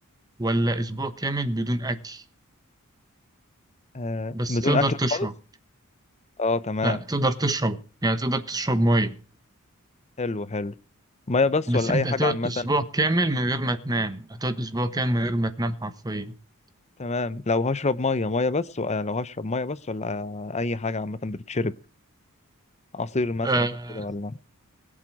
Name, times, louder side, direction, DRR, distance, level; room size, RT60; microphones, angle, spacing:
voice 1, 0.4-2.2 4.3-5.3 6.8-9.1 11.7-16.3 23.4-24.1, right 1 dB, 15° right, 1.1 m, -25 dB
voice 2, 3.9-5.3 6.4-7.0 10.2-10.7 11.3-12.7 17.0-21.7 22.9-23.7 23.9-24.4, left 3 dB, 30° left, 0.7 m, -27 dB
22.0 x 7.7 x 4.8 m
head